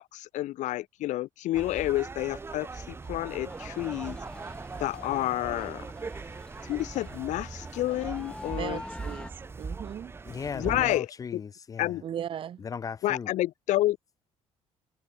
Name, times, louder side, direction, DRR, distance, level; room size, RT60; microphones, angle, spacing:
voice 1, 0.0-4.2 4.8-5.9 6.7-8.8 10.5-11.4 11.8-12.0 13.0-14.0, left 15 dB, 80° left, 2.7 m, -29 dB
sound 1, 1.5-11.0, right 4 dB, 20° right, 2.0 m, -40 dB
sound 2, 3.5-9.3, left 1 dB, 5° left, 3.8 m, -46 dB
voice 2, 8.6-10.1 10.6-10.9 12.0-12.6, right 9 dB, 45° right, 2.4 m, -37 dB
voice 3, 10.3-11.9 12.6-13.3, left 6 dB, 30° left, 1.2 m, -37 dB
cardioid pair, 160°, 12 cm